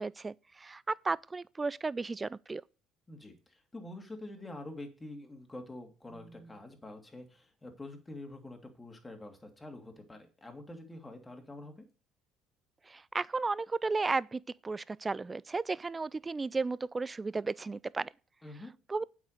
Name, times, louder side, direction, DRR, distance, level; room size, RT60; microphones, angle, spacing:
voice 1, 0.0-2.6 12.9-18.1 18.9-19.0, right 3 dB, 25° right, 0.4 m, -34 dB
voice 2, 3.1-11.9 18.4-18.7, left 2 dB, 15° left, 2.8 m, -46 dB
8.3 x 6.1 x 6.7 m
hypercardioid pair, 65°, 0 cm